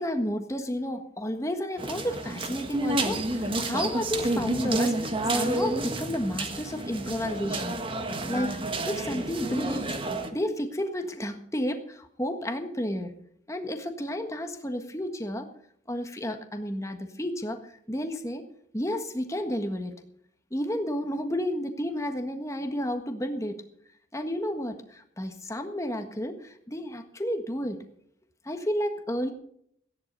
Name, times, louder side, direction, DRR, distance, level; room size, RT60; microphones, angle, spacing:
voice 1, 0.0-7.7 8.3-8.6 8.8-9.9 10.3-13.1 13.5-15.5 15.9-18.4 18.7-19.9 20.5-23.6 24.1-27.8 28.4-29.3, equal, 15° left, 6 dB, 1.5 m, -31 dB
sound 1, 1.8-10.3, right 2 dB, 25° right, 1.5 m, -30 dB
16.0 x 10.5 x 5.3 m, 0.67 s
head